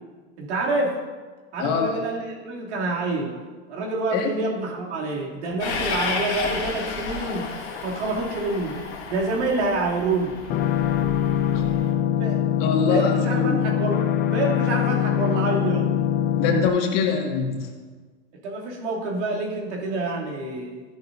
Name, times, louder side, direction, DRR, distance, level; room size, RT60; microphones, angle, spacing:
voice 1, 0.4-0.9 1.5-3.4 3.7-7.5 7.8-8.8 9.1-10.4 12.2-12.4 12.8-15.9 18.4-20.8, right 2 dB, 80° right, -3 dB, 3.0 m, -27 dB
voice 2, 1.6-2.0 4.1-4.3 11.5-11.6 12.6-13.6 16.4-17.7, left 5 dB, 50° left, 1 dB, 2.1 m, -23 dB
Train, 5.6-11.9, left 5 dB, 80° left, 1.9 m, -32 dB
sound 1, 10.5-16.7, left 10 dB, 30° left, 0.5 m, -23 dB
14.0 x 11.0 x 2.7 m, 1.4 s
hypercardioid pair, 125°, 34 cm